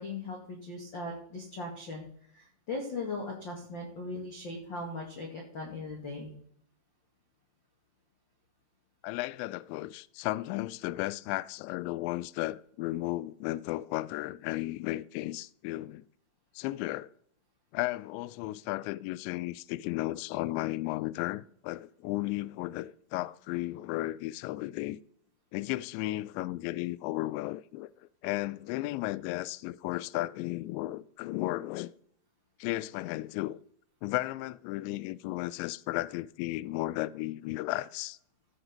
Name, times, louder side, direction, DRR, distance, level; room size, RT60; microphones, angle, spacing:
voice 1, 0.0-2.0 2.3-6.3 34.8-34.9, left 2 dB, 50° left, 1.4 m, -39 dB
voice 2, 9.0-16.0 16.6-17.1 17.7-25.0 25.5-27.9 28.2-31.9 32.6-33.6 34.0-38.2, left 18 dB, 85° left, 2.6 m, -34 dB
15.5 x 6.1 x 5.2 m
omnidirectional pair, 5.6 m